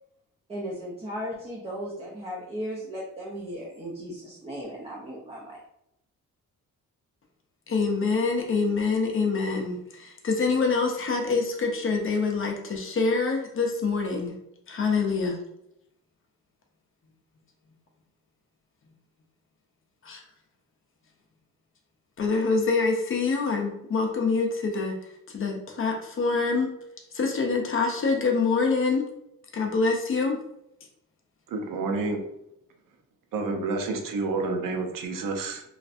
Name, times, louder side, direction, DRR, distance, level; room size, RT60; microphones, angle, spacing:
voice 1, 0.5-5.6, equal, 20° right, -4 dB, 0.5 m, -36 dB
voice 2, 7.7-14.4 14.7-15.4 20.0-20.2 22.2-26.7 27.1-29.1 29.5-30.4, left 4 dB, 40° left, 2 dB, 0.5 m, -25 dB
voice 3, 31.5-32.2 33.3-35.6, right 3 dB, 75° right, 3 dB, 0.6 m, -29 dB
3.1 x 2.4 x 2.5 m, 0.79 s
wide cardioid pair, 160°, 33 cm